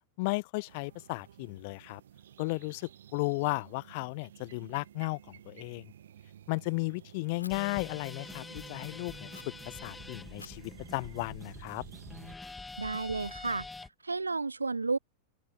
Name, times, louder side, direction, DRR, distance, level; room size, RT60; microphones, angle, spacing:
voice 1, 0.2-2.0 2.4-5.8 6.5-9.3 9.7-11.8, left 27 dB, 50° left, 1.0 m, -34 dB
sound 1, 0.7-12.3, right 10 dB, 60° right, 1.8 m, -53 dB
Fire, 7.4-7.5 9.3-9.4 10.4-12.3, left 4 dB, 80° left, 7.5 m, -54 dB
sound 2, 7.5-13.9, left 3 dB, 10° left, 2.5 m, -46 dB
voice 2, 12.8-13.7 14.0-15.0, right 3 dB, 80° right, 0.4 m, -32 dB
open air
figure-of-eight pair, 90°, 0 cm